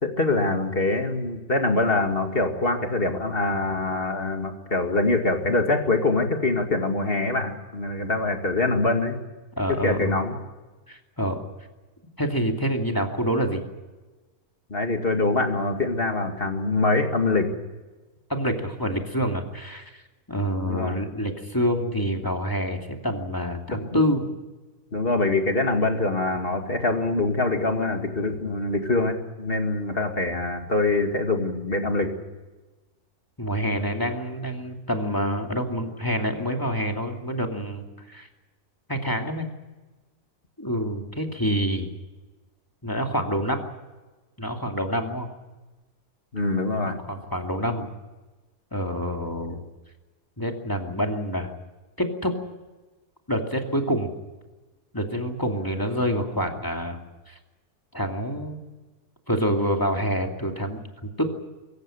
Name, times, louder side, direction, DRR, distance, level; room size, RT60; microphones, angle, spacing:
voice 1, 0.0-9.2 9.7-10.4 14.7-17.5 20.7-21.0 23.9-24.0 24.9-32.1 46.3-47.0, left 2 dB, 35° left, 4 dB, 2.4 m, -24 dB
voice 2, 9.6-10.2 10.9-11.4 12.2-13.6 18.3-20.0 20.3-24.2 33.4-38.3 38.9-39.5 40.6-41.9 42.8-43.7 44.4-45.3 47.1-47.9 48.7-49.6 50.4-51.5 52.0-52.3 53.3-54.1 54.9-57.0 57.3-57.4 57.9-58.6 59.3-61.2, equal, 10° left, 3 dB, 2.5 m, -27 dB
24.5 x 14.5 x 9.9 m, 1.2 s
omnidirectional pair, 1.7 m